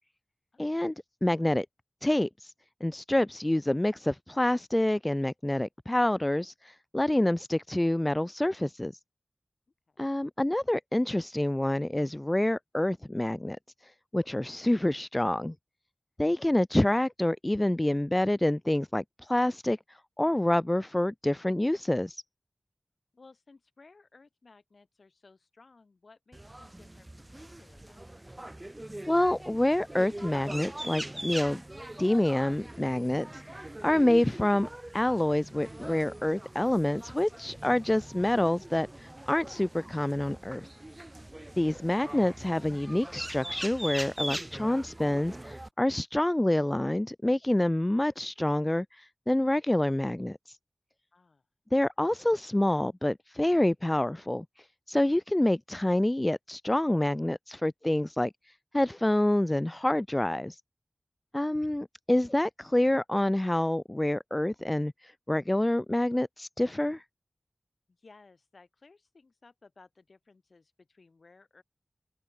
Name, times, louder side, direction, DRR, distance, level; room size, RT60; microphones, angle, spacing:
voice 1, 0.6-0.9 1.2-1.7 2.0-2.5 2.8-8.9 10.0-13.6 14.1-15.5 16.2-19.8 20.2-22.2 29.1-31.6 32.0-33.4 33.8-40.7 41.6-50.4 51.7-54.5 54.9-58.3 58.7-60.6 61.3-67.0, left 1 dB, 20° left, 0.4 m, -27 dB
voice 2, 23.1-28.5 51.1-51.4 67.9-71.6, left 3 dB, 80° left, 3.9 m, -59 dB
sound 1, 26.3-45.7, right 1 dB, 25° right, 0.7 m, -42 dB
wide cardioid pair, 65°, 0 cm